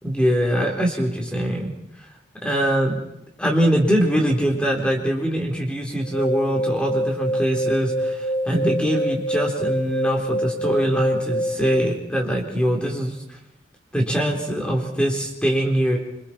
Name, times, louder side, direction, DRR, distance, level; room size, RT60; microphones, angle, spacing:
voice 1, 0.0-1.7 2.4-3.0 3.4-13.4 13.9-16.0, equal, 5° left, 1 dB, 3.7 m, -23 dB
sound 1, 6.0-12.0, equal, 60° left, 1.6 m, -25 dB
26.5 x 25.5 x 4.4 m, 0.81 s
head